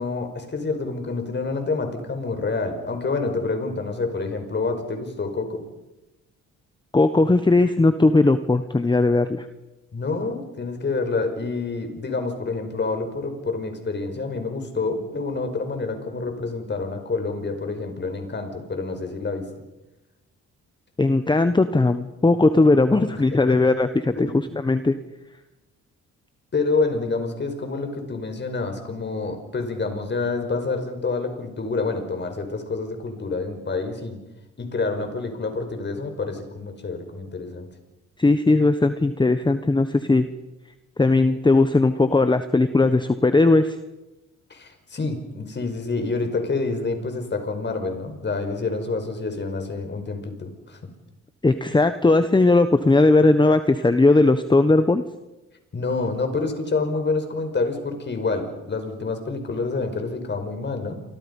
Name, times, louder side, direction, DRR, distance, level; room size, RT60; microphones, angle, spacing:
voice 1, 0.0-5.7 9.9-19.5 22.9-23.7 24.1-24.6 26.5-34.2 34.6-37.7 44.5-50.8 55.7-61.0, left 3 dB, 35° left, 6 dB, 5.4 m, -28 dB
voice 2, 6.9-9.5 21.0-24.3 24.6-25.0 38.2-40.3 41.0-43.8 51.4-55.0, left 2 dB, 15° left, 10 dB, 1.2 m, -18 dB
28.5 x 25.5 x 5.5 m, 1.0 s
cardioid pair, 90°, 30 cm